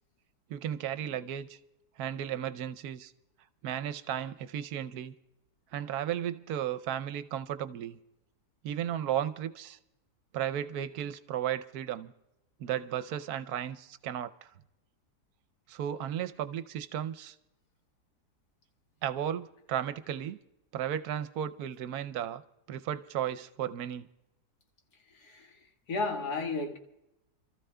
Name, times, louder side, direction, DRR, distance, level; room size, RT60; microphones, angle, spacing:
voice 1, 0.5-1.6 2.0-3.1 3.6-5.1 5.7-8.0 8.6-9.8 10.3-12.1 12.6-14.5 15.7-17.3 19.0-20.4 20.7-22.4 22.7-24.1, right 10 dB, 75° right, 1.1 m, -34 dB
voice 2, 25.2-25.5 25.9-26.8, left 3 dB, 80° left, 2.1 m, -33 dB
29.0 x 14.0 x 2.2 m
omnidirectional pair, 1.7 m